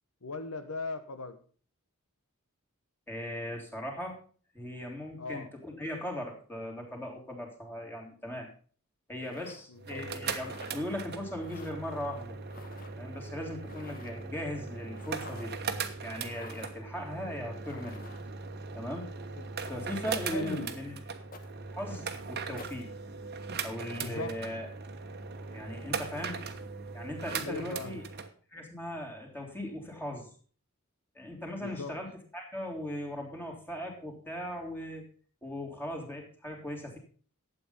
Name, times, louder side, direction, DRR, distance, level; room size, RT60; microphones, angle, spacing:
voice 1, 0.2-1.4 5.2-5.5 9.7-10.0 19.4-19.5 20.3-20.7 24.0-24.4 27.4-28.0 31.6-32.0, left 3 dB, 70° left, 9 dB, 1.2 m, -38 dB
voice 2, 3.1-4.2 4.5-8.5 9.1-12.4 13.0-15.6 16.0-18.1 18.7-19.1 19.7-21.0 21.7-22.9 23.6-24.7 25.5-26.4 26.9-28.0 28.5-30.3 31.1-35.0 35.4-37.0, left 1 dB, 10° left, 1 dB, 3.2 m, -38 dB
sound 1, 9.2-9.6 10.3-10.8 11.4-11.7 12.5-12.9 13.6-14.3 14.9-15.5 16.2-16.8 17.6-18.3 20.1-20.4 21.3-21.5 22.6-22.8, left 3 dB, 40° left, 1.6 m, -50 dB
sound 2, 9.8-28.3, right 5 dB, 45° right, 1.2 m, -39 dB
12.0 x 8.7 x 5.4 m, 0.42 s
head